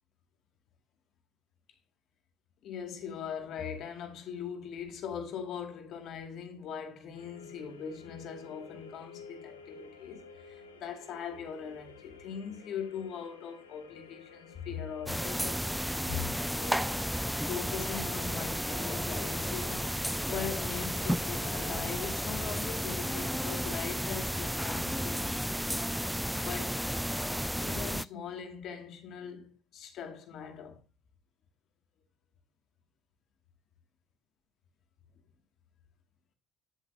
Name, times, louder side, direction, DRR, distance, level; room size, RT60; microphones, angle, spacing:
voice 1, 2.6-16.8 17.5-19.9 20.3-25.6 26.3-26.8 27.6-30.8, left 7 dB, 60° left, 2.2 m, -41 dB
sound 1, 7.1-22.1, left 5 dB, 90° left, 1.2 m, -53 dB
sound 2, 15.1-28.0, equal, ahead, 0.3 m, -33 dB
10.0 x 8.0 x 2.7 m
hypercardioid pair, 55°, 0 cm